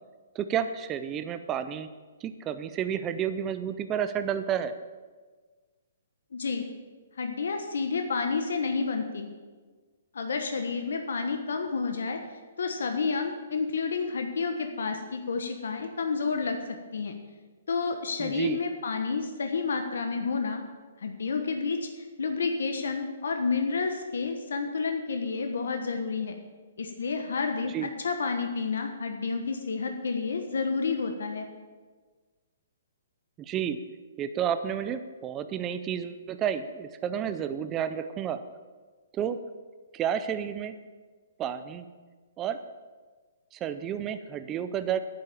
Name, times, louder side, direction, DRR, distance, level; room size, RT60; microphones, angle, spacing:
voice 1, 0.3-1.9 2.2-4.7 18.2-18.6 27.7-27.9 33.4-33.8 34.2-38.4 39.1-39.4 39.9-40.8 41.4-41.9 42.4-42.6 43.5-45.0, right 9 dB, 15° right, 10 dB, 0.4 m, -31 dB
voice 2, 6.3-6.7 7.2-9.3 10.1-12.2 12.6-16.6 16.9-17.1 17.7-20.6 21.0-26.3 26.8-31.5, left 4 dB, 80° left, 5 dB, 1.2 m, -30 dB
9.8 x 7.7 x 6.9 m, 1.4 s
hypercardioid pair, 165°, 0 cm